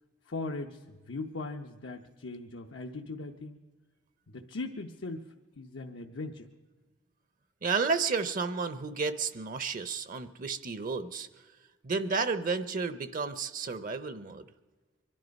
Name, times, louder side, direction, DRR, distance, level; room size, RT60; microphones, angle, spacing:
voice 1, 0.3-3.6 4.3-5.3 5.6-6.5, left 3 dB, 85° left, 3 dB, 0.8 m, -39 dB
voice 2, 7.6-11.3 11.8-14.5, right 4 dB, 45° right, 13 dB, 0.6 m, -32 dB
24.0 x 11.0 x 5.2 m, 1.4 s
head